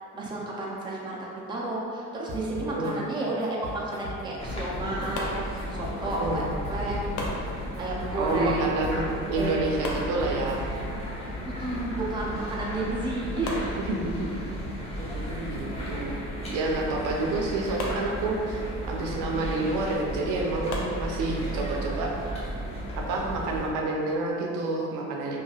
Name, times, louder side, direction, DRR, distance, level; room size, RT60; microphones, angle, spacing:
voice 1, 0.1-7.0 7.8-8.8 9.4-9.7 11.4-13.8 15.0-15.2, right 2 dB, 15° right, -4 dB, 0.4 m, -32 dB
sound 1, 2.3-3.0 3.4-4.8 5.0-5.3 5.6-7.5 7.7-9.0 9.4-9.7 9.9-11.0, left 1 dB, 55° right, 0.8 m, -40 dB
voice 2, 2.6-3.0 6.0-6.5 8.1-10.6 13.8-14.3 15.0-18.6 18.9-22.1 23.0-25.4, right 2 dB, 75° right, -1 dB, 0.5 m, -29 dB
sound 2, 4.4-23.7, equal, 20° left, 0.7 m, -34 dB
sound 3, 5.2-6.2 7.2-8.2 9.8-10.8 12.5-12.6 12.9-13.0 13.5-14.5 17.8-18.8 20.7-21.6, left 1 dB, 75° left, 0.6 m, -37 dB
3.1 x 2.5 x 2.3 m, 2.4 s
cardioid pair, 105°, 32 cm